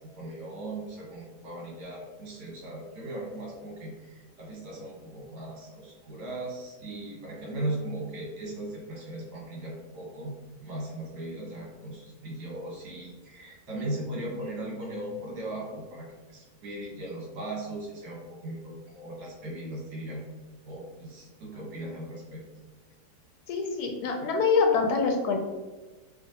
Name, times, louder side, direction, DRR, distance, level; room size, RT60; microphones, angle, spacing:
voice 1, 0.2-10.3 10.6-20.2 20.6-22.4, right 1 dB, 70° right, -3 dB, 1.8 m, -38 dB
voice 2, 23.5-25.4, left 5 dB, 75° left, 2 dB, 1.0 m, -25 dB
5.4 x 2.3 x 2.8 m, 1.2 s
omnidirectional pair, 1.8 m